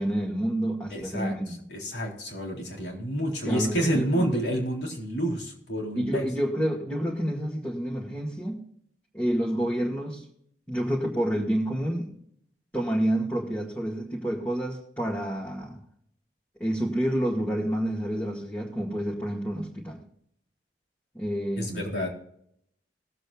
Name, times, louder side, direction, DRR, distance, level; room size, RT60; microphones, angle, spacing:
voice 1, 0.0-1.5 3.5-4.4 5.9-8.6 9.1-10.3 10.7-12.2 12.7-15.8 16.6-20.0 21.1-21.8, right 1 dB, 10° left, -4 dB, 1.9 m, -29 dB
voice 2, 0.9-1.4 1.7-6.3 21.6-22.1, equal, 75° left, 0 dB, 3.6 m, -29 dB
20.5 x 8.0 x 2.4 m, 0.69 s
head